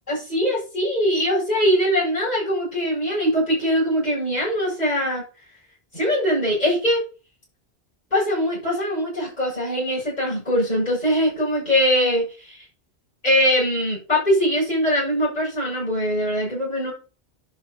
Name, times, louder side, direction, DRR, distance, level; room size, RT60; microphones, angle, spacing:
voice 1, 0.1-5.2 5.9-7.0 8.1-12.6 13.2-16.9, equal, 40° left, -6 dB, 7.6 m, -22 dB
11.0 x 6.0 x 5.5 m, 0.33 s
omnidirectional pair, 1.1 m